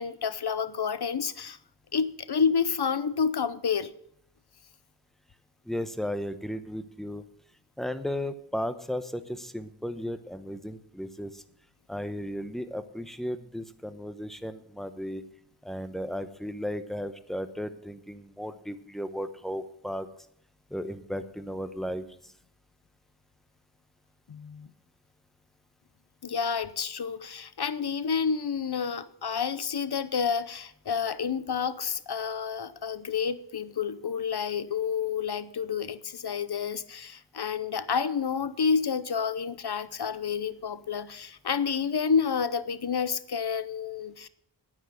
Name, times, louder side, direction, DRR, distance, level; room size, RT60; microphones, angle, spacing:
voice 1, 0.0-1.6 1.9-3.9 24.3-24.7 26.2-44.3, left 6 dB, 60° left, 15 dB, 0.8 m, -29 dB
voice 2, 5.6-7.2 7.8-11.4 11.9-15.2 15.6-20.1 20.7-22.3, equal, ahead, 10 dB, 0.9 m, -35 dB
9.6 x 9.2 x 7.5 m, 0.70 s
wide cardioid pair, 75°, 45 cm